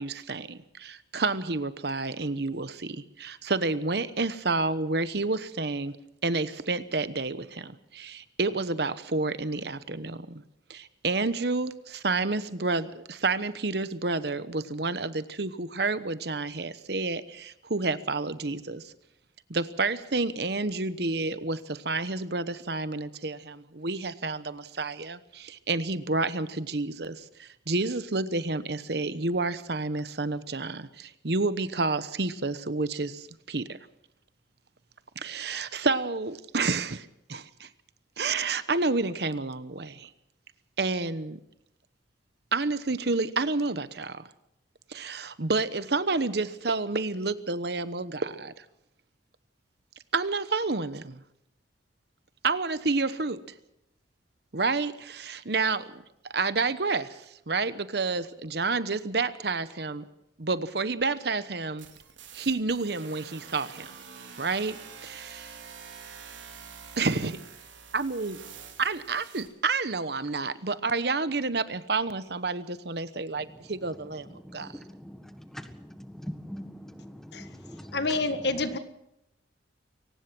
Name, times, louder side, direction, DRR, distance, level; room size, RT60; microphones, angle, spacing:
voice 1, 0.0-6.0 6.2-10.4 10.7-18.9 19.5-33.7 35.2-37.7 38.2-40.1 40.8-41.4 42.5-44.3 44.9-48.6 50.1-51.2 52.4-53.4 54.5-60.0 60.4-61.9 62.3-63.9 64.4-65.5 67.0-67.4 67.9-68.4 68.8-74.7, right 3 dB, 60° right, 14 dB, 1.0 m, -30 dB
sound 1, 61.8-69.5, right 6 dB, 90° right, 4.0 m, -47 dB
voice 2, 74.4-78.2, equal, ahead, 8 dB, 1.5 m, -42 dB
voice 3, 77.9-78.8, left 3 dB, 65° left, 10 dB, 1.7 m, -28 dB
23.0 x 18.5 x 6.1 m, 0.82 s
head